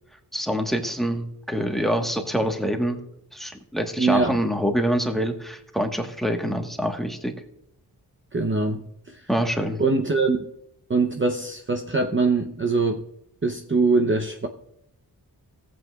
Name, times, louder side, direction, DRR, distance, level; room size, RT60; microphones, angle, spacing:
voice 1, 0.3-3.0 3.3-7.3 9.3-9.8, equal, ahead, 4 dB, 1.3 m, -25 dB
voice 2, 4.0-4.4 8.3-9.3 9.8-10.4 10.9-13.0 13.4-14.5, right 3 dB, 30° right, 4 dB, 0.7 m, -23 dB
17.5 x 7.9 x 2.3 m, 0.80 s
wide cardioid pair, 95°, 39 cm